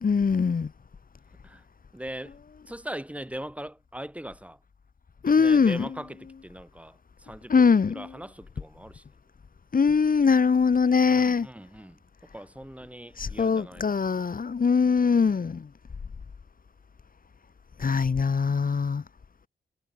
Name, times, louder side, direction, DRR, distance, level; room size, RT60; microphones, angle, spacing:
voice 1, 0.0-0.7 5.2-5.8 7.5-8.1 9.7-11.5 13.2-15.6 17.8-19.0, left 5 dB, 50° left, 1.7 m, -22 dB
voice 2, 1.9-2.4 2.7-4.6 5.2-9.0 11.1-12.0 12.3-13.8 14.8-15.3, right 1 dB, 5° right, 7.2 m, -40 dB
cardioid pair, 55°, 18 cm